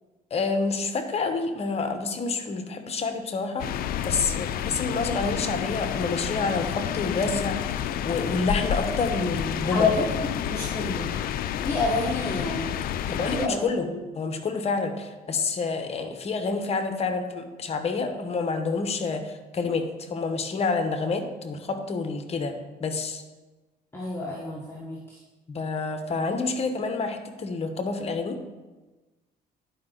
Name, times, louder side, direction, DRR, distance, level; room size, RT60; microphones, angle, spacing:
voice 1, 0.3-9.9 13.1-13.9 14.1-22.5 22.8-23.2 25.5-28.4, left 4 dB, 40° left, 7 dB, 1.0 m, -28 dB
sound 1, 3.6-13.5, left 10 dB, 60° left, 0.4 m, -30 dB
voice 2, 9.7-11.1 11.6-12.7 13.1-14.0 23.9-25.2, left 3 dB, 15° left, -4 dB, 1.2 m, -29 dB
10.5 x 4.9 x 3.8 m, 1.2 s
cardioid pair, 110°, 17 cm